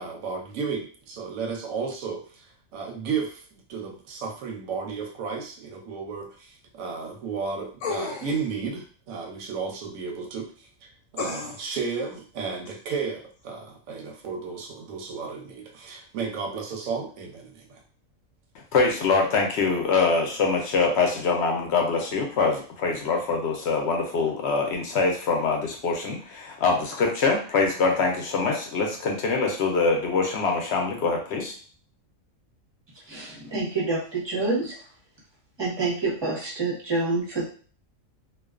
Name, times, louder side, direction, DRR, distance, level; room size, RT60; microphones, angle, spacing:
voice 1, 0.0-2.5 2.7-3.4 3.7-10.7 11.1-17.8, right 5 dB, 90° right, 3 dB, 1.0 m, -33 dB
sound 1, 7.8-8.5 11.2-11.8 12.7-12.8, left 4 dB, 85° left, 1.1 m, -33 dB
voice 2, 18.7-31.6, left 4 dB, 65° left, 2 dB, 0.7 m, -24 dB
voice 3, 33.1-34.8 35.6-37.4, right 3 dB, 25° right, -5 dB, 0.6 m, -27 dB
2.4 x 2.2 x 2.4 m, 0.42 s
omnidirectional pair, 1.4 m